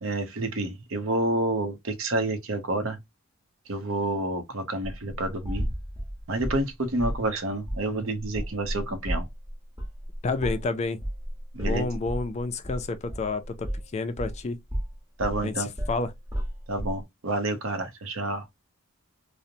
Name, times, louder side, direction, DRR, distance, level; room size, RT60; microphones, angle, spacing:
voice 1, 0.0-3.0 3.7-5.7 6.3-9.3 11.5-11.9 15.2-15.7 16.7-18.4, right 2 dB, 70° right, 0.6 m, -29 dB
sound 1, 4.8-6.6 7.0-7.3 7.7-7.9 8.2-14.4 14.7-17.0, equal, 20° right, 1.0 m, -33 dB
sound 2, 5.6-7.4, equal, ahead, 0.6 m, -35 dB
voice 2, 10.2-11.0 11.6-14.6 15.4-16.1, left 3 dB, 30° left, 0.3 m, -30 dB
2.8 x 2.0 x 2.5 m
head